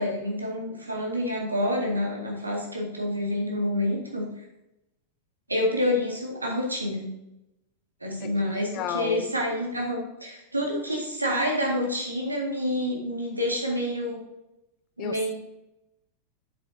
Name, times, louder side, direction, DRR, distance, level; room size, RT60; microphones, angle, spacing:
voice 1, 0.0-4.3 5.5-7.1 8.0-14.2 15.0-15.3, left 1 dB, 80° right, -1 dB, 1.9 m, -28 dB
voice 2, 8.2-9.3 15.0-15.2, left 10 dB, 35° left, 10 dB, 0.6 m, -33 dB
7.9 x 7.2 x 2.7 m, 0.91 s
figure-of-eight pair, 90°, 0 cm